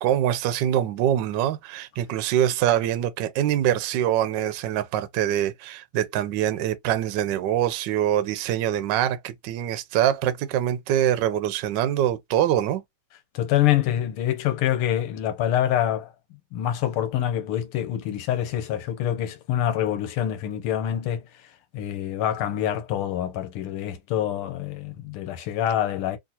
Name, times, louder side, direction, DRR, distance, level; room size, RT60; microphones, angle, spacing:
voice 1, 0.0-12.8, right 11 dB, 70° right, 1.1 m, -24 dB
voice 2, 13.3-16.1 16.5-26.2, left 11 dB, 85° left, 1.7 m, -26 dB
3.7 x 2.5 x 2.8 m
omnidirectional pair, 2.4 m